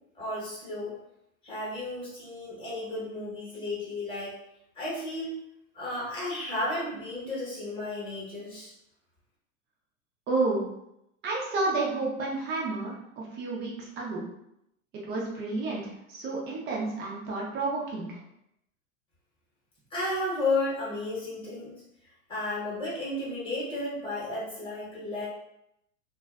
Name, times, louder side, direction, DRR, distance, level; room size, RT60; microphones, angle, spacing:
voice 1, 0.1-0.9 1.4-4.3 4.7-5.3 5.7-8.7 19.9-21.8 22.3-25.3, left 2 dB, 15° left, -7 dB, 1.0 m, -33 dB
voice 2, 10.3-10.6 11.2-14.2 15.1-15.8 16.1-18.2, right 3 dB, 25° right, -3 dB, 0.5 m, -30 dB
2.5 x 2.2 x 2.3 m, 0.80 s
supercardioid pair, 130°, 40 cm